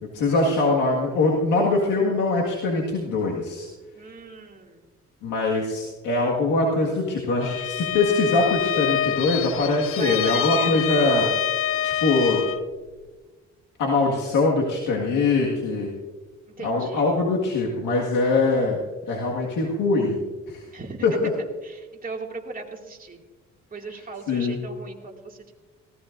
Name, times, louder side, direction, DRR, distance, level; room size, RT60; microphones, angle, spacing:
voice 1, 0.0-3.7 5.2-11.3 11.8-12.4 13.8-15.9 16.6-18.8 19.1-20.2 20.5-20.6 21.0-21.3 24.3-24.6, left 3 dB, 90° left, -2 dB, 1.9 m, -22 dB
voice 2, 3.9-4.9 10.0-11.2 16.6-17.1 20.7-21.0 21.6-23.2 23.7-25.5, right 3 dB, 30° right, 0 dB, 2.3 m, -37 dB
Bowed string instrument, 7.4-12.7, left 10 dB, 45° left, 0.5 m, -26 dB
19.0 x 16.5 x 2.6 m, 1.3 s
cardioid pair, 90°, 30 cm